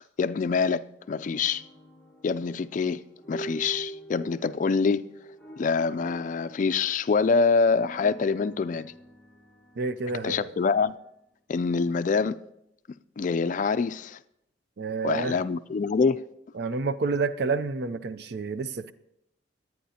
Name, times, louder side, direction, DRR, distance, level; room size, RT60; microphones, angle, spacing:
voice 1, 0.2-1.6 2.2-5.1 5.6-8.9 10.2-10.9 11.5-12.4 13.2-14.2 15.0-16.3, left 5 dB, 45° left, 0.3 m, -25 dB
sound 1, 1.0-11.1, right 2 dB, 10° left, 1.0 m, -46 dB
voice 2, 9.8-10.5 14.8-15.4 16.5-18.9, right 4 dB, 60° right, 0.5 m, -29 dB
21.5 x 9.2 x 2.8 m
head